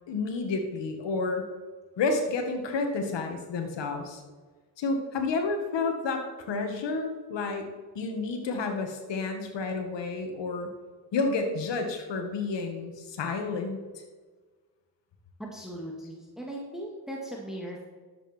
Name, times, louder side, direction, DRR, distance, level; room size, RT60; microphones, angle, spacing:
voice 1, 0.1-1.5 2.0-4.2 4.8-7.7 8.0-10.7 11.1-14.0, left 3 dB, 75° left, 4 dB, 2.0 m, -30 dB
voice 2, 15.4-17.9, right 1 dB, ahead, -2 dB, 2.3 m, -38 dB
11.0 x 7.9 x 4.5 m, 1.4 s
supercardioid pair, 60°, 44 cm